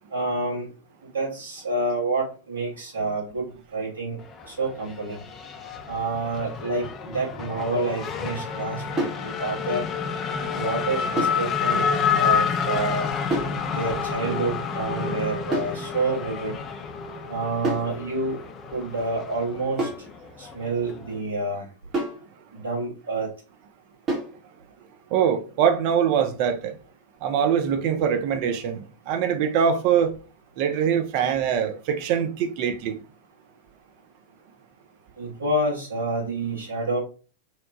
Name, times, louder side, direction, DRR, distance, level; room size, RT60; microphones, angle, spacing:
voice 1, 0.1-0.7 1.1-4.2 4.5-5.2 5.9-9.9 10.5-13.1 13.7-16.5 17.3-18.4 18.7-20.1 20.4-21.7 22.5-23.3 35.2-37.0, right 2 dB, 70° right, 1.3 m, -28 dB
Race car auto racing / Accelerating revving vroom, 4.2-21.2, left 6 dB, 25° left, 0.3 m, -29 dB
sound 1, 9.0-9.3 11.2-11.5 13.3-13.6 15.5-15.8 17.6-17.9 19.8-20.1 21.9-22.3 24.1-24.4, right 2 dB, 30° right, 0.9 m, -28 dB
voice 2, 25.1-26.7 27.2-30.2 30.6-33.0, right 8 dB, 45° right, 0.4 m, -23 dB
2.8 x 2.1 x 2.6 m
figure-of-eight pair, 90°, 0 cm